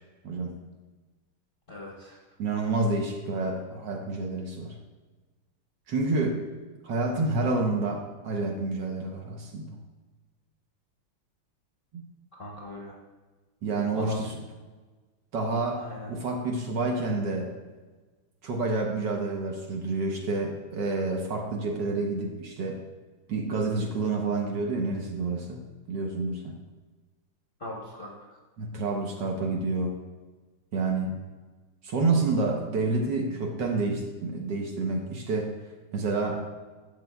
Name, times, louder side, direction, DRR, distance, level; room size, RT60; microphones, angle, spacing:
voice 1, 0.2-0.6 2.4-4.7 5.9-6.4 6.8-9.8 11.9-12.1 13.6-14.3 15.3-17.5 18.4-22.8 23.3-25.6 25.9-26.6 28.6-29.9 30.7-31.1 31.8-35.5 35.9-36.5, right 3 dB, 60° right, 1 dB, 1.4 m, -28 dB
voice 2, 1.7-2.2 12.3-13.0 13.9-14.3 15.8-16.1 27.6-28.4, left 2 dB, 40° left, -3 dB, 0.8 m, -39 dB
11.5 x 7.2 x 2.3 m, 1.3 s
omnidirectional pair, 2.4 m